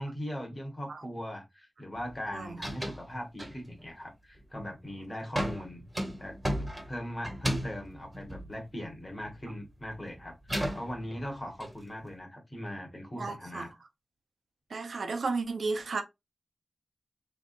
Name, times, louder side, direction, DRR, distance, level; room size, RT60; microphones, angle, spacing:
voice 1, 0.0-5.8 6.1-13.7, equal, 25° left, 1.6 m, -40 dB
sound 1, 2.0-2.2 2.5-3.1 3.4-3.9 4.4-4.8 5.4-9.4 9.7-11.7, equal, 10° right, 1.4 m, -35 dB
voice 2, 13.1-13.7 14.7-16.0, right 3 dB, 85° right, 0.8 m, -33 dB
3.5 x 3.5 x 2.6 m
wide cardioid pair, 95°, 0 cm